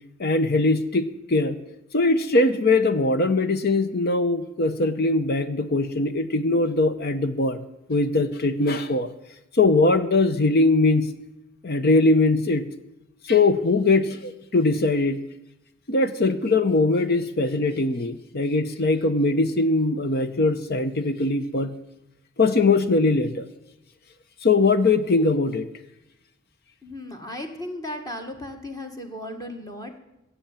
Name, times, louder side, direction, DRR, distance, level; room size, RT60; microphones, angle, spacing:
voice 1, 0.2-1.6 1.9-7.6 7.9-9.1 9.5-11.1 11.6-12.7 13.3-15.2 15.9-21.7 22.4-23.5 24.4-25.7, left 3 dB, 50° left, 11 dB, 0.8 m, -21 dB
voice 2, 26.8-30.0, left 1 dB, 20° left, 5 dB, 1.7 m, -35 dB
16.0 x 7.1 x 8.9 m, 0.91 s
head